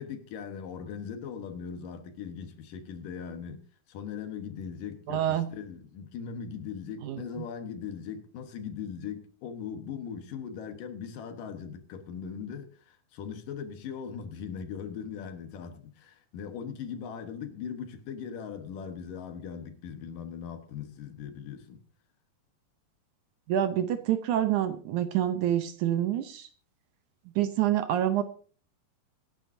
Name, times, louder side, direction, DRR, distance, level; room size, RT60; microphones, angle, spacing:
voice 1, 0.0-3.6 3.9-21.8, left 7 dB, 75° left, 2.9 m, -39 dB
voice 2, 5.1-5.5 7.0-7.5 23.5-26.5 27.4-28.2, right 11 dB, 70° right, 2.0 m, -27 dB
24.5 x 10.0 x 2.7 m
omnidirectional pair, 4.0 m